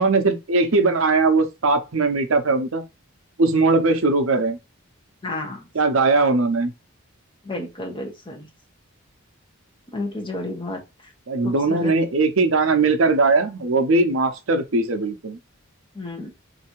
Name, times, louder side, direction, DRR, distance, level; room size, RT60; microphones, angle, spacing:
voice 1, 0.0-2.8 3.4-4.6 5.7-6.7 11.3-15.4, right 3 dB, 70° right, 0.7 m, -20 dB
voice 2, 5.2-5.6 7.4-8.5 9.9-10.8 11.4-11.9 15.9-16.3, left 2 dB, 25° left, 1.1 m, -31 dB
3.3 x 2.7 x 4.5 m
head